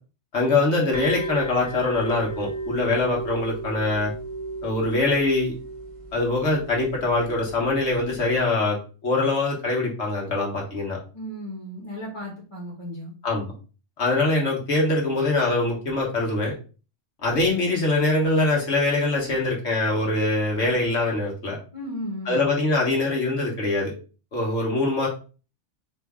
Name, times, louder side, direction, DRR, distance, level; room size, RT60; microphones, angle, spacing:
voice 1, 0.3-4.1 4.6-5.5 6.1-8.8 9.0-11.0 13.2-13.5 14.0-16.5 17.2-21.6 22.3-23.9 24.3-25.1, left 2 dB, 70° left, -2 dB, 1.5 m, -23 dB
sound 1, 0.9-8.4, right 3 dB, 30° right, 1.1 m, -35 dB
voice 2, 11.1-13.1 21.7-22.4, equal, 25° left, -3 dB, 1.2 m, -35 dB
4.4 x 2.7 x 3.5 m, 0.35 s
omnidirectional pair, 1.2 m